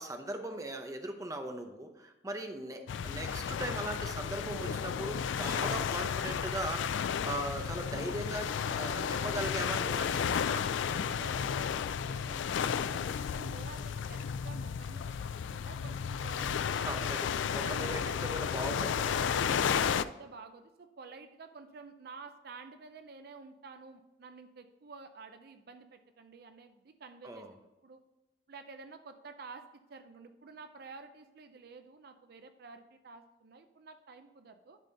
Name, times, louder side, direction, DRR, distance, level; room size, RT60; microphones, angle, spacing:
voice 1, 0.0-10.5 16.8-19.2 27.2-27.5, right 1 dB, 20° right, 5 dB, 0.8 m, -39 dB
sound 1, 2.9-20.0, left 7 dB, 90° left, 0.4 m, -33 dB
voice 2, 10.4-12.6 12.9-16.9 17.7-18.1 19.1-28.0 28.5-29.6 29.9-34.8, right 4 dB, 55° right, 8 dB, 0.5 m, -50 dB
11.0 x 4.2 x 4.0 m, 1.0 s
head